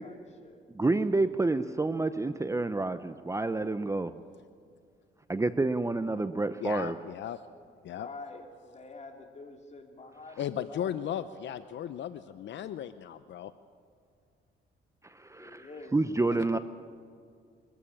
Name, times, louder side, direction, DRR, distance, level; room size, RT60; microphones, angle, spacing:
voice 1, 0.0-0.7 7.8-11.6 15.4-15.9, left 3 dB, 35° left, 3 dB, 3.1 m, -47 dB
voice 2, 0.7-4.1 5.3-7.0 15.1-16.6, right 2 dB, 15° right, 12 dB, 0.7 m, -29 dB
voice 3, 6.6-7.4 7.8-8.1 10.4-13.5 16.5-16.6, left 10 dB, 65° left, 12 dB, 0.7 m, -36 dB
23.5 x 14.5 x 8.7 m, 2.2 s
cardioid pair, 90°, 20 cm